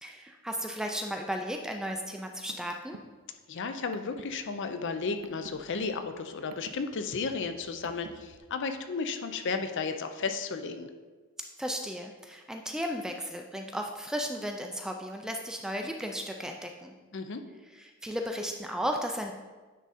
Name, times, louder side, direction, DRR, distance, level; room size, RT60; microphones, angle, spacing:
voice 1, 0.0-3.0 11.6-16.9 18.0-19.3, equal, 5° right, 3 dB, 0.3 m, -35 dB
Car, 2.1-8.4, right 3 dB, 85° right, 0.5 m, -52 dB
voice 2, 3.5-10.9 17.1-17.4, left 4 dB, 55° left, 8 dB, 0.5 m, -33 dB
9.2 x 3.7 x 4.2 m, 1.3 s
head